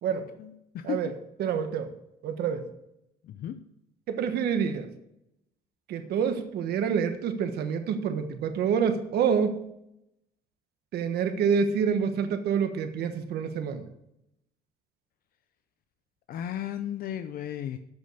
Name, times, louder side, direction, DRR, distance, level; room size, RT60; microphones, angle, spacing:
voice 1, 0.4-1.1 3.2-3.6 16.3-17.8, left 10 dB, 60° left, 9 dB, 0.7 m, -35 dB
voice 2, 1.4-1.9 2.2-2.7 4.1-4.9 5.9-9.6 10.9-13.8, right 7 dB, 70° right, 8 dB, 1.3 m, -27 dB
13.0 x 5.4 x 6.8 m, 0.82 s
cardioid pair, 110°, 17 cm